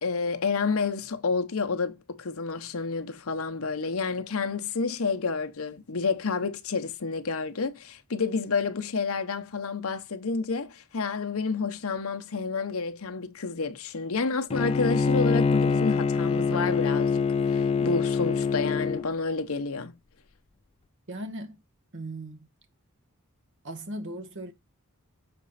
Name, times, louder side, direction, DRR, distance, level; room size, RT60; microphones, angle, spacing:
voice 1, 0.0-17.2 17.5-19.9, left 4 dB, 65° left, 0.8 m, -29 dB
Bowed string instrument, 14.5-19.0, left 5 dB, 25° left, 0.3 m, -24 dB
voice 2, 21.1-21.6 21.9-22.5 23.6-24.5, right 1 dB, 55° right, 1.2 m, -37 dB
6.9 x 4.2 x 4.0 m
head